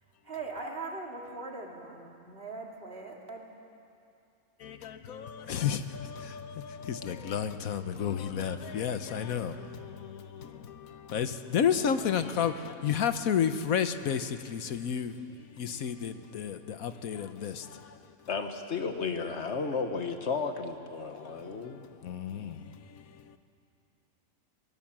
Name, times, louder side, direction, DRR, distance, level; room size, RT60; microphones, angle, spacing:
voice 1, 0.2-3.5, right 3 dB, 45° right, 2.6 m, -40 dB
voice 2, 4.6-18.0 21.2-21.7 22.0-23.4, left 8 dB, 90° left, 1.4 m, -32 dB
voice 3, 18.3-21.8, left 5 dB, 55° left, 1.6 m, -33 dB
24.0 x 19.0 x 7.4 m
omnidirectional pair, 1.4 m